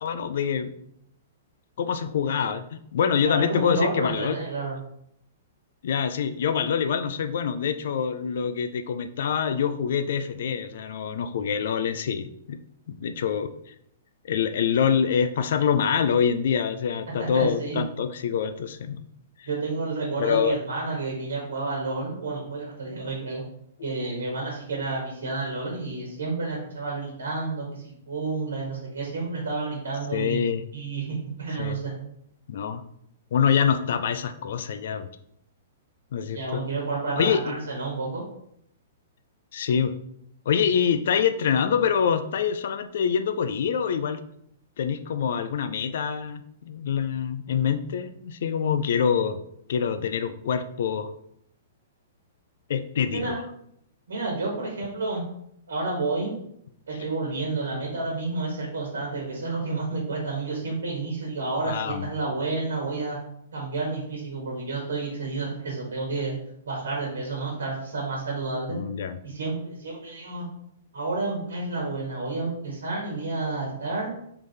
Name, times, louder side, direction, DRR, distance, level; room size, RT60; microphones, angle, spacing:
voice 1, 0.0-0.7 1.8-4.4 5.8-12.6 12.9-13.7 14.2-19.1 19.4-19.5 20.2-20.6 30.1-30.7 31.6-31.8 32.5-32.8 33.3-35.1 36.1-36.6 37.2-37.4 39.5-39.9 40.5-44.2 44.8-49.4 49.7-51.1 52.7-53.4 61.6-62.1 68.7-69.2, left 7 dB, 60° left, 10 dB, 0.4 m, -25 dB
voice 2, 3.2-4.8 17.2-17.8 19.5-23.4 23.8-30.4 30.7-31.9 36.3-38.2 53.1-53.4 54.1-55.2 55.7-56.3 56.9-63.2 63.5-66.3 66.6-68.8 69.2-70.4 70.9-74.1, right 3 dB, 70° right, -2 dB, 1.3 m, -30 dB
3.8 x 3.4 x 3.3 m, 0.72 s
figure-of-eight pair, 115°, 0 cm